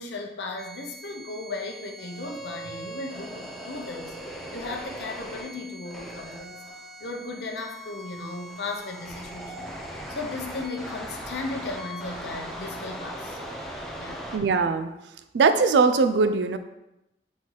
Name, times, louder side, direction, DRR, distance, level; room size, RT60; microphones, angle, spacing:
voice 1, 0.0-6.6 7.0-9.8 10.1-13.4 14.0-14.2, left 3 dB, 70° left, 2 dB, 0.7 m, -36 dB
sound 1, 0.6-14.4, equal, ahead, 0.6 m, -39 dB
voice 2, 14.3-14.9 15.3-16.6, right 4 dB, 75° right, 10 dB, 0.3 m, -21 dB
4.2 x 3.8 x 3.1 m, 0.91 s
head